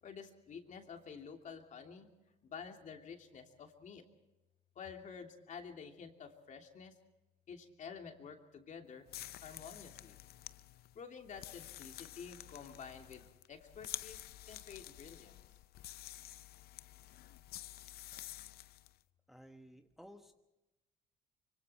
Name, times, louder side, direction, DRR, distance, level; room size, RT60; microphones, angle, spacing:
voice 1, 0.0-2.1 2.4-4.1 4.7-6.9 7.5-9.1 9.4-10.2 10.9-15.4, left 6 dB, 45° left, 4 dB, 2.9 m, -50 dB
sound 1, 9.1-19.0, left 14 dB, 65° left, 0.6 m, -50 dB
voice 2, 19.3-20.3, equal, ahead, 5 dB, 1.2 m, -56 dB
25.5 x 24.5 x 4.4 m, 0.99 s
cardioid pair, 110°, 17 cm